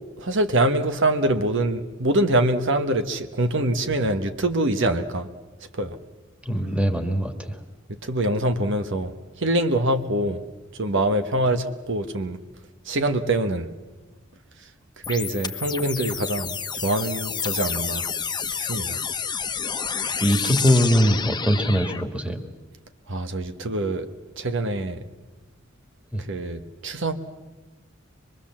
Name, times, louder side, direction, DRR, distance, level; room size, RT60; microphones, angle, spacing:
voice 1, 0.2-5.3 5.7-6.0 8.0-10.4 10.7-12.4 12.8-13.7 15.1-16.6 16.8-18.1 18.6-19.0 23.1-24.1 24.4-25.0 26.2-27.1, right 1 dB, 65° right, 8 dB, 1.2 m, -24 dB
voice 2, 6.5-7.6 19.9-22.4 26.1-26.2, equal, 5° right, 6 dB, 1.8 m, -22 dB
sound 1, 15.0-22.0, left 6 dB, 20° left, 1.1 m, -29 dB
24.5 x 22.5 x 7.4 m, 1.2 s
head